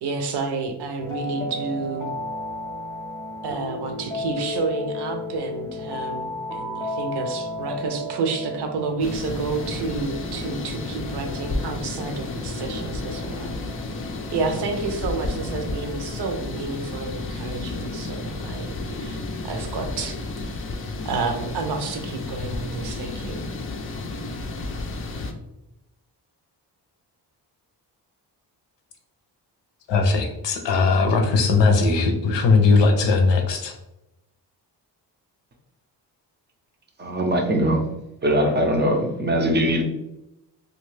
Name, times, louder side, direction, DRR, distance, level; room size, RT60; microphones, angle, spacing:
voice 1, 0.0-2.1 3.4-13.5 14.3-19.2 19.5-20.6 21.0-23.4, right 4 dB, 70° right, 5 dB, 0.6 m, -30 dB
sound 1, 1.0-16.7, left 1 dB, 10° left, 0.7 m, -34 dB
sound 2, 9.0-25.3, left 2 dB, 30° left, 0.4 m, -32 dB
voice 2, 29.9-33.7, left 4 dB, 80° left, 4 dB, 0.7 m, -19 dB
voice 3, 37.0-37.8 38.2-39.8, equal, 25° right, 3 dB, 0.5 m, -21 dB
2.3 x 2.3 x 3.1 m, 0.90 s
cardioid pair, 80°, 43 cm